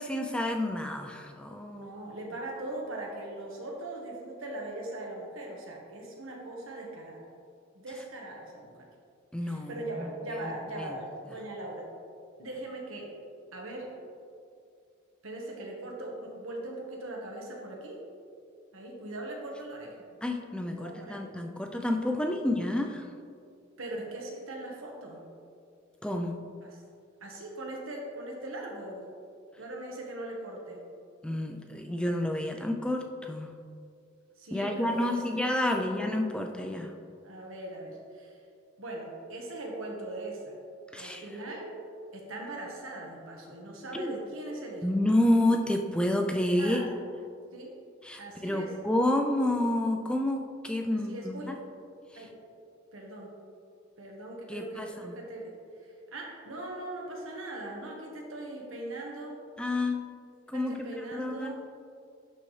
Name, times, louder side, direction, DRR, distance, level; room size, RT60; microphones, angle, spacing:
voice 1, 0.0-1.9 9.3-10.9 20.2-23.1 26.0-26.4 31.2-33.5 34.5-36.9 40.9-41.2 43.9-44.1 44.8-46.8 48.0-51.5 52.1-52.2 54.5-55.1 59.6-60.0 60.5-61.5, left 1 dB, 5° left, 3 dB, 0.4 m, -29 dB
voice 2, 1.7-7.2 7.7-8.9 9.4-11.9 12.4-13.1 13.5-13.9 15.2-18.0 18.7-20.1 20.6-21.2 22.1-22.3 23.8-25.2 26.6-26.8 27.2-29.1 29.6-30.8 34.4-35.4 35.6-36.1 37.2-38.4 38.8-40.6 40.9-41.8 42.1-44.9 46.6-46.9 47.5-47.8 48.2-48.7 50.9-51.5 52.2-52.3 52.9-53.3 54.0-55.5 56.1-59.4 60.5-61.6, right 2 dB, 90° right, 0 dB, 1.2 m, -40 dB
11.0 x 4.1 x 3.2 m, 2.3 s
head